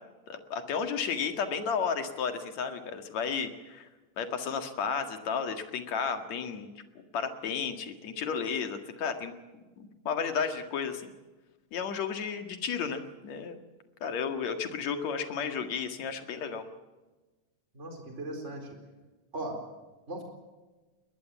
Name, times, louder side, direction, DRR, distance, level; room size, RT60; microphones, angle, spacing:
voice 1, 0.3-3.9 4.2-6.7 7.0-9.3 9.8-11.1 11.7-13.6 14.0-16.6, left 6 dB, 60° left, 7 dB, 3.0 m, -33 dB
voice 2, 17.7-18.8 19.3-19.6 20.1-20.2, right 2 dB, 20° right, 3 dB, 4.3 m, -38 dB
21.5 x 21.0 x 7.1 m, 1.2 s
omnidirectional pair, 3.7 m